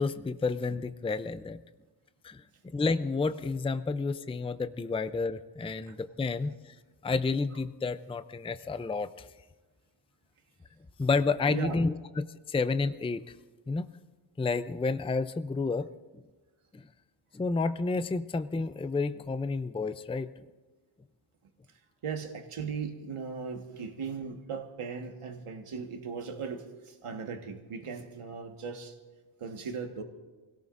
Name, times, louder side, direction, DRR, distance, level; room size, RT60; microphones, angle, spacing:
voice 1, 0.0-1.6 2.2-2.4 2.7-6.7 7.0-9.3 11.0-11.9 12.2-13.3 13.7-13.9 14.4-15.9 16.1-16.2 16.7-16.9 17.3-20.3, left 4 dB, 10° left, 11 dB, 0.4 m, -30 dB
voice 2, 11.5-11.8 21.7-29.0 29.4-30.0, right 5 dB, 90° right, 3 dB, 1.6 m, -38 dB
28.5 x 17.5 x 2.6 m, 1.3 s
wide cardioid pair, 115°, 50 cm